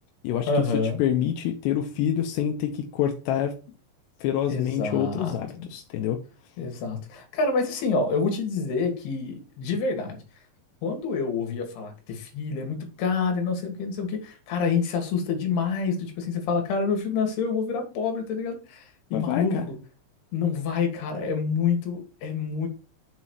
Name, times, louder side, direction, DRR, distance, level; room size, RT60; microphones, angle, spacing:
voice 1, 0.5-1.0 4.5-5.7 6.6-10.2 10.8-19.8 20.3-22.7, left 5 dB, 70° left, 3.8 m, -27 dB
voice 2, 1.0-3.6 4.2-6.2 19.1-19.7, left 10 dB, 90° left, 3.0 m, -26 dB
7.4 x 4.2 x 6.3 m
omnidirectional pair, 4.9 m